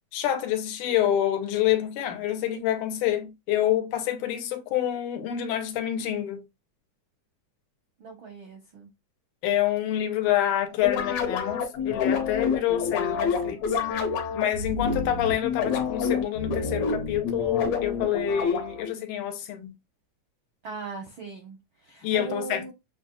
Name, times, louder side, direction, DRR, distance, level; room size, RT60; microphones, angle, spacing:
voice 1, 0.1-6.4 9.4-13.6 14.3-19.7 22.0-22.7, left 11 dB, 80° left, 2.2 m, -27 dB
voice 2, 8.0-8.9 20.6-22.7, right 4 dB, 75° right, 1.1 m, -39 dB
sound 1, 10.8-18.9, left 5 dB, 65° left, 2.2 m, -28 dB
6.9 x 2.7 x 2.3 m
omnidirectional pair, 3.6 m